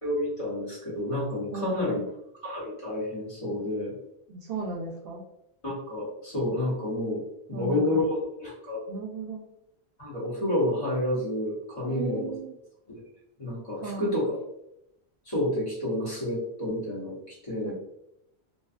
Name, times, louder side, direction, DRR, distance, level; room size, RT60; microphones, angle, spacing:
voice 1, 0.0-2.0 2.4-3.9 5.6-7.2 7.5-8.8 10.0-12.3 12.9-13.0 13.4-14.4 15.2-17.7, left 1 dB, 30° left, -7 dB, 1.1 m, -29 dB
voice 2, 1.5-2.0 4.3-5.2 7.5-8.1 8.9-9.4 11.9-12.5 13.8-14.1 17.6-17.7, right 2 dB, 65° right, -2 dB, 0.8 m, -35 dB
2.6 x 2.3 x 2.4 m, 0.81 s
omnidirectional pair, 1.1 m